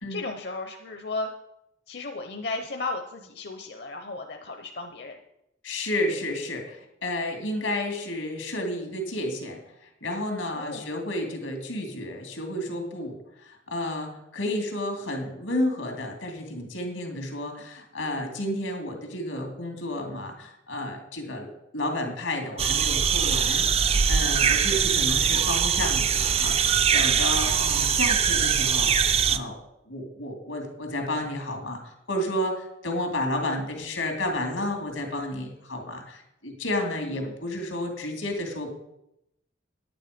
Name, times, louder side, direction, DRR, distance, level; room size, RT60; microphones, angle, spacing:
voice 1, 0.1-1.3 1.9-5.2 10.5-10.9 24.5-24.8 37.2-37.3, left 3 dB, 55° left, 4 dB, 0.8 m, -35 dB
voice 2, 5.6-9.6 10.0-28.9 29.3-29.6 29.9-38.7, left 1 dB, 85° left, 3 dB, 2.5 m, -31 dB
sound 1, 22.6-29.4, right 7 dB, 30° right, 0.4 m, -22 dB
9.8 x 9.7 x 5.1 m, 0.85 s
head